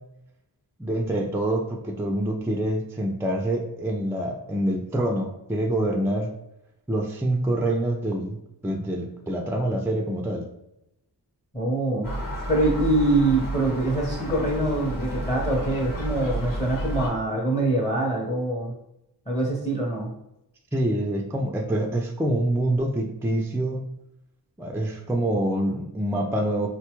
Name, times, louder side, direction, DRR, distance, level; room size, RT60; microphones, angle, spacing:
voice 1, 0.8-6.3 6.9-8.4 8.6-10.5 20.7-23.8 24.6-26.7, right 1 dB, 5° right, 2 dB, 0.3 m, -26 dB
voice 2, 11.5-12.1 12.5-18.7 19.3-20.1, right 2 dB, 15° left, -3 dB, 0.7 m, -24 dB
Gull seagull, 12.0-17.1, right 1 dB, 55° left, 1.0 m, -31 dB
4.0 x 2.2 x 2.9 m, 0.84 s
wide cardioid pair, 90°, 41 cm